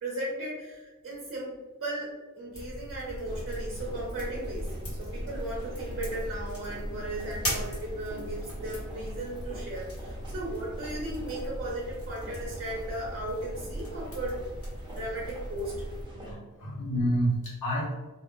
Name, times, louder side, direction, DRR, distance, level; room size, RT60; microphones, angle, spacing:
voice 1, 0.0-14.4 14.9-15.8, right 1 dB, 45° right, -4 dB, 0.6 m, -36 dB
sound 1, 2.5-16.0, equal, 45° left, 1.1 m, -40 dB
sound 2, 3.3-16.3, equal, 15° right, 0.8 m, -42 dB
sound 3, 7.3-14.1, equal, 20° left, 0.9 m, -49 dB
voice 2, 16.1-17.9, right 1 dB, 80° left, -6 dB, 1.1 m, -29 dB
2.3 x 2.1 x 3.0 m, 1.2 s
wide cardioid pair, 95°, 31 cm